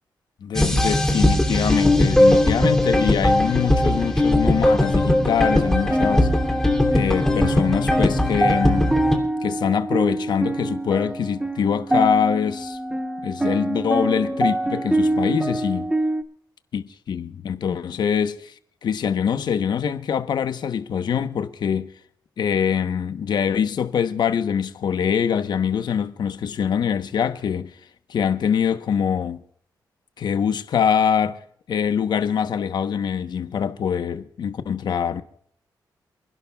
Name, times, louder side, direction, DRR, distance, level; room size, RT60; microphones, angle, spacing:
voice 1, 0.4-6.3 6.9-8.9 9.4-12.8 13.2-15.9 16.7-18.5 18.8-21.9 22.4-27.7 28.1-29.4 30.2-31.4 31.7-35.2, left 7 dB, 70° left, 1.0 m, -24 dB
sound 1, 0.5-9.2, left 1 dB, 5° left, 2.9 m, -19 dB
sound 2, 5.3-16.2, right 1 dB, 10° right, 1.3 m, -25 dB
28.5 x 11.0 x 2.3 m
cardioid pair, 100°, 8 cm